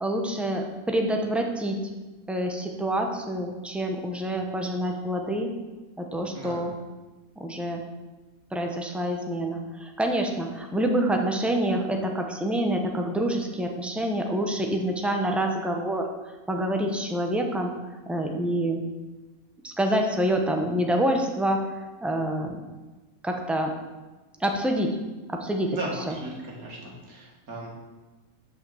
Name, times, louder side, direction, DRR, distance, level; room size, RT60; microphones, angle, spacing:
voice 1, 0.0-1.8 2.3-5.5 6.0-6.7 7.4-7.8 8.5-16.0 16.5-17.7 18.1-18.8 19.6-22.6 23.2-23.7 24.4-25.0 25.3-25.8 26.1-26.2, right 1 dB, ahead, 3 dB, 0.6 m, -27 dB
voice 2, 25.7-27.7, right 2 dB, 80° right, -3 dB, 2.6 m, -36 dB
6.4 x 5.8 x 7.2 m, 1.2 s
omnidirectional pair, 1.5 m